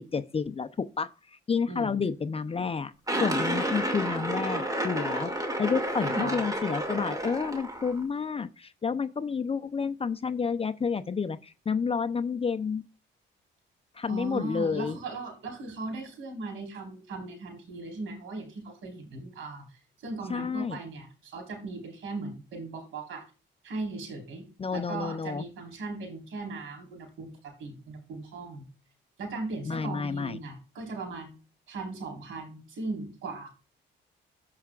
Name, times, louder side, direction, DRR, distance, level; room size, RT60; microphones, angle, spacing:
voice 1, 0.1-1.1 1.5-2.9 3.2-12.8 14.0-15.0 20.3-20.8 24.6-25.4 29.7-30.4, left 5 dB, 30° left, 0.7 m, -30 dB
voice 2, 1.7-2.0 6.0-6.4 14.1-23.2 23.6-24.4 24.7-28.7 29.2-31.4 31.7-33.5, right 3 dB, 80° right, 4.4 m, -38 dB
sound 1, 3.1-8.0, right 1 dB, 15° right, 2.4 m, -30 dB
14.0 x 5.7 x 2.5 m
cardioid pair, 90°, 20 cm